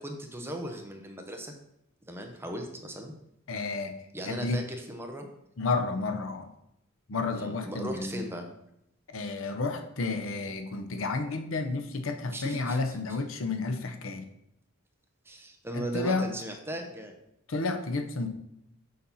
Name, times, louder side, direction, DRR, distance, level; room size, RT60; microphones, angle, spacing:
voice 1, 0.0-1.5 2.1-3.2 4.1-5.3 7.3-8.5 12.3-12.8 15.2-17.1, right 1 dB, 10° right, 3 dB, 0.8 m, -37 dB
voice 2, 3.5-3.9 4.3-4.6 5.6-6.5 7.1-8.2 9.1-14.2 15.7-16.3 17.5-18.3, left 3 dB, 65° left, 7 dB, 0.7 m, -31 dB
6.6 x 4.2 x 5.5 m, 0.80 s
head